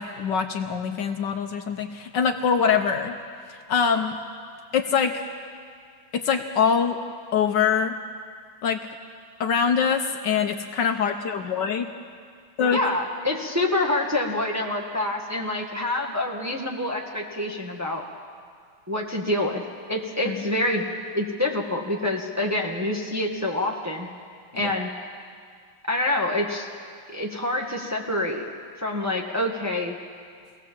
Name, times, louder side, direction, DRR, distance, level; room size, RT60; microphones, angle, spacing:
voice 1, 0.0-3.2 3.5-4.2 4.7-5.2 6.1-7.0 7.3-8.0 8.6-8.9 9.4-11.9 12.6-12.8 20.3-20.4 24.6-24.7, left 6 dB, 65° left, 5 dB, 1.5 m, -24 dB
voice 2, 12.7-18.0 18.9-19.6 19.9-20.8 21.1-24.1 24.5-24.9 25.9-26.7 27.1-28.5 28.8-29.9, left 1 dB, 10° right, -1 dB, 1.5 m, -26 dB
23.5 x 17.5 x 7.5 m, 2.1 s
omnidirectional pair, 2.2 m